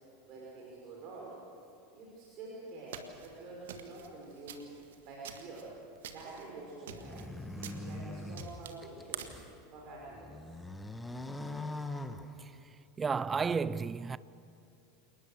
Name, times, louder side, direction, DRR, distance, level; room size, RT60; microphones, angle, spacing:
voice 1, 0.2-1.3 1.9-4.7 5.0-5.7 6.1-9.3 9.7-10.4, right 2 dB, 45° right, 5.6 m, -47 dB
sound 1, 2.9-9.5, right 9 dB, 65° right, 1.6 m, -48 dB
sound 2, 6.9-9.5 10.0-12.8, left 2 dB, 10° left, 1.3 m, -42 dB
voice 2, 13.0-14.2, right 5 dB, 20° right, 0.5 m, -32 dB
28.5 x 19.5 x 6.7 m
figure-of-eight pair, 85°, 0 cm